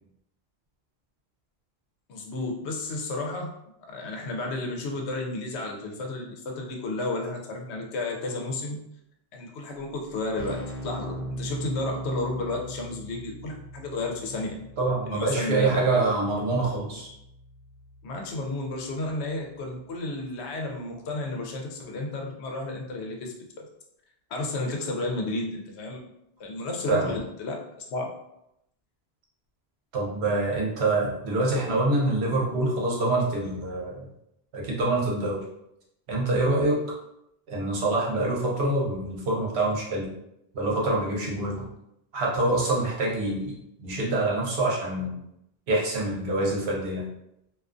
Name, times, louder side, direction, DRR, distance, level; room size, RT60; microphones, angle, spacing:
voice 1, 2.1-3.5 3.9-8.8 9.3-14.6 15.1-16.0 18.0-23.6 24.3-26.0 26.4-27.6 27.9-28.1, left 2 dB, 85° left, 1 dB, 0.9 m, -32 dB
Keyboard (musical), 10.1-20.7, right 1 dB, 55° left, 0.6 m, -41 dB
voice 2, 14.8-17.1 26.9-27.1 29.9-34.1 34.5-35.4 36.1-36.8 37.5-40.1 40.5-41.7 42.1-43.6 43.8-45.2 45.7-47.1, right 2 dB, 75° right, -3 dB, 1.0 m, -25 dB
2.4 x 2.3 x 2.4 m, 0.80 s
omnidirectional pair, 1.1 m